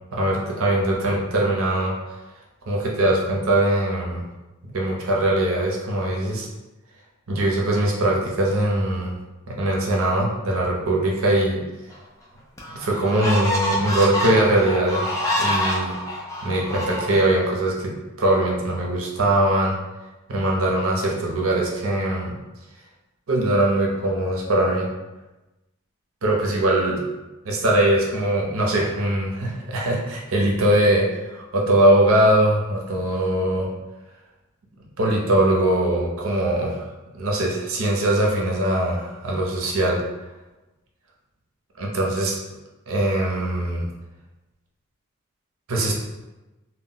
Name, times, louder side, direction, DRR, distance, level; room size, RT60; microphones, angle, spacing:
voice 1, 0.1-2.2 2.7-4.2 4.7-6.5 7.3-9.2 9.5-11.6 12.7-15.0 15.4-15.9 16.4-19.7 20.3-22.3 23.3-24.9 26.2-27.0 27.4-33.7 35.0-40.0 41.8-42.3 42.9-43.9 45.7-45.9, right 1 dB, 75° right, -1 dB, 0.6 m, -21 dB
sound 1, 11.9-12.0 12.6-17.5, equal, 15° left, 0.3 m, -26 dB
2.2 x 2.0 x 3.7 m, 1.1 s
head